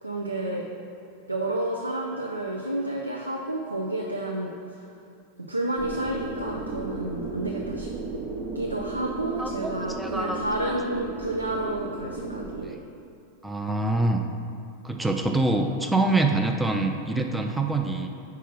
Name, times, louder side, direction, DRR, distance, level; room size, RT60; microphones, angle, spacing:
voice 1, 0.0-0.7 1.3-4.8 5.4-7.9 8.5-12.8, right 1 dB, 85° right, 0 dB, 0.4 m, -30 dB
sound 1, 5.8-12.6, right 3 dB, 40° right, 0.7 m, -34 dB
voice 2, 9.4-9.7 10.0-10.7 12.6-12.8 13.4-14.2 14.8-18.1, right 2 dB, 5° right, 3 dB, 0.4 m, -25 dB
4.7 x 4.6 x 5.8 m, 2.6 s
figure-of-eight pair, 90°, 0 cm